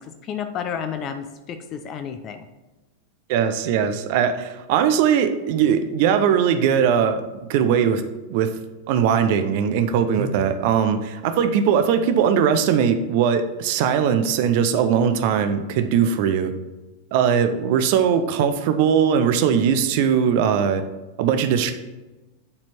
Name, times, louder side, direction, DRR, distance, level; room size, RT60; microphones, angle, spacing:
voice 1, 0.0-2.5, left 7 dB, 35° left, 8 dB, 0.5 m, -31 dB
voice 2, 3.3-7.2 7.5-8.0 8.3-8.5 8.9-16.5 17.1-20.8 21.2-21.7, right 8 dB, 50° right, 9 dB, 0.6 m, -20 dB
8.6 x 4.4 x 4.4 m, 1.1 s
figure-of-eight pair, 90°, 0 cm